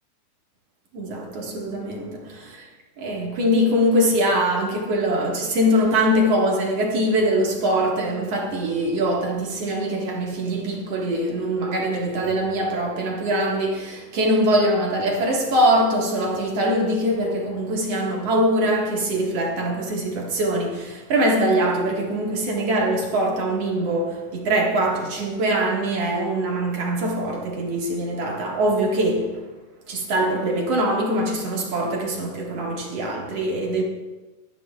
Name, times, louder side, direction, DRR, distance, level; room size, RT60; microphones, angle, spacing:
voice 1, 0.9-2.7 3.0-29.4 29.9-33.8, right 1 dB, 55° right, 2.7 m, -23 dB
23.0 x 10.5 x 2.4 m
omnidirectional pair, 3.7 m